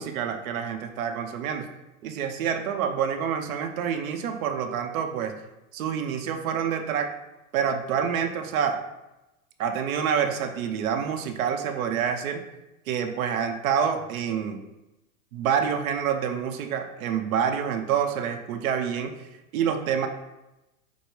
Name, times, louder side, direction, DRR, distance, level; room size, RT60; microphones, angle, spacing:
voice 1, 0.0-1.7 2.0-5.3 5.7-7.1 7.5-8.8 9.6-12.4 12.9-14.6 15.3-19.1 19.5-20.1, right 7 dB, 75° right, 6 dB, 0.7 m, -27 dB
5.3 x 2.1 x 4.7 m, 0.97 s
hypercardioid pair, 125°, 42 cm